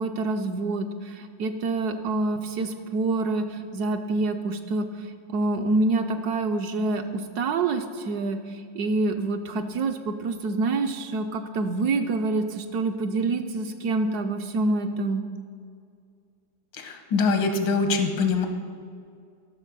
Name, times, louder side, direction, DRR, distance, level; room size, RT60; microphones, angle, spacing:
voice 1, 0.0-15.2, right 3 dB, 70° right, 6 dB, 1.0 m, -27 dB
voice 2, 16.8-18.5, left 4 dB, 85° left, 5 dB, 1.8 m, -23 dB
12.5 x 6.4 x 5.3 m, 2.3 s
omnidirectional pair, 2.0 m